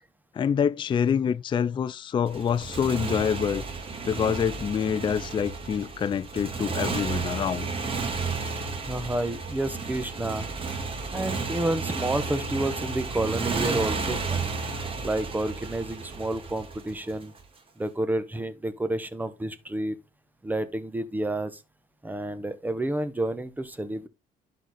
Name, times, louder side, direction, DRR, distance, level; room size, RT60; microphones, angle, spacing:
voice 1, 0.3-3.6 4.1-7.7, left 7 dB, 30° left, 0.4 m, -26 dB
Motorcycle, 2.3-17.4, right 4 dB, 30° right, 1.8 m, -32 dB
voice 2, 8.9-10.5 11.1-14.5 15.0-17.3 17.8-20.0 20.4-21.6 22.0-24.1, right 1 dB, 10° right, 1.0 m, -30 dB
11.0 x 4.0 x 4.1 m
cardioid pair, 110°, 17 cm